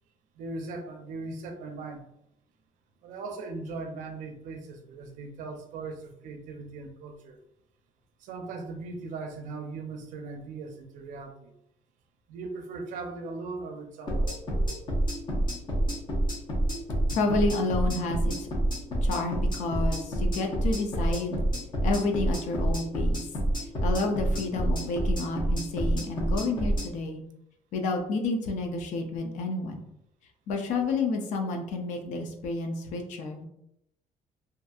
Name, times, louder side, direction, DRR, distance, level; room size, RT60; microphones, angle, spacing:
voice 1, 0.3-2.1 3.0-7.4 8.2-11.5 12.3-14.4, right 3 dB, 85° right, 6 dB, 0.4 m, -39 dB
sound 1, 14.1-26.9, right 1 dB, 35° left, 0.7 m, -27 dB
voice 2, 17.1-18.5 19.0-21.4 21.8-23.2 23.8-27.2 27.7-29.8 30.5-33.5, left 3 dB, 70° left, 3 dB, 0.5 m, -30 dB
2.5 x 2.5 x 2.3 m, 0.78 s
cardioid pair, 170°, 13 cm